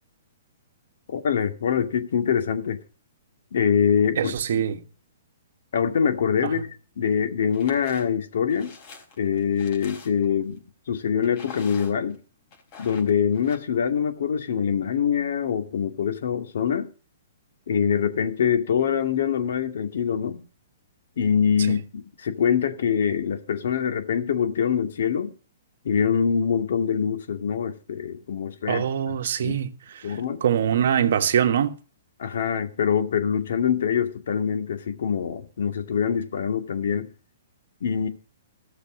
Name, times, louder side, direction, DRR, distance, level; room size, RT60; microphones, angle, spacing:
voice 1, 1.1-2.8 3.5-4.6 5.7-6.7 7.0-8.7 9.2-10.6 10.9-12.2 12.8-16.9 17.7-20.4 21.2-25.3 25.8-28.8 29.4-29.6 30.0-30.4 32.2-37.1 37.8-38.1, left 7 dB, 70° left, 2.1 m, -24 dB
voice 2, 4.1-4.8 6.4-6.6 21.7-21.8 28.7-31.8, right 9 dB, 65° right, 1.4 m, -24 dB
sound 1, 7.5-8.0 8.5-10.4 11.2-12.1 12.5-13.6, left 5 dB, 40° left, 4.2 m, -45 dB
15.0 x 6.7 x 6.2 m
hypercardioid pair, 150°, 0 cm